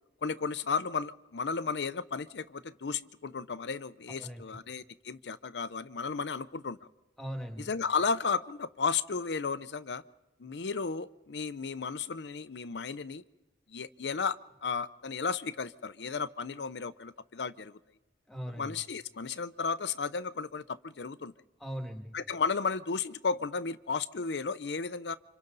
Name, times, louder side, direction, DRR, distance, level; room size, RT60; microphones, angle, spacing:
voice 1, 0.2-6.8 7.7-10.0 10.4-13.2 13.7-17.8 18.6-21.3 22.1-25.1, left 5 dB, 85° left, 13 dB, 0.6 m, -34 dB
voice 2, 4.2-4.6 7.2-7.7 18.3-18.8 21.6-22.2, equal, 5° left, 4 dB, 2.2 m, -40 dB
29.5 x 26.0 x 4.0 m, 1.0 s
head